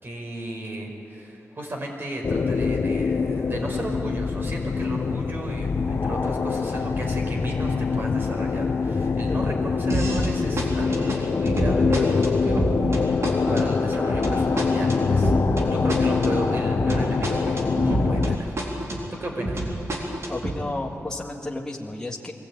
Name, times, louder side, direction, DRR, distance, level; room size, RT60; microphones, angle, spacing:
voice 1, 0.0-12.6 13.5-15.3 15.7-18.5 19.2-19.6, right 1 dB, 45° right, 1 dB, 4.9 m, -34 dB
sound 1, 2.2-18.4, left 5 dB, 55° left, 0.7 m, -24 dB
sound 2, 9.9-10.3 10.6-18.3 18.6-20.6, right 1 dB, 65° right, 4.0 m, -28 dB
voice 2, 20.3-22.3, left 2 dB, 10° left, -3 dB, 1.8 m, -32 dB
23.0 x 17.0 x 9.0 m, 2.7 s
wide cardioid pair, 95°, 5 cm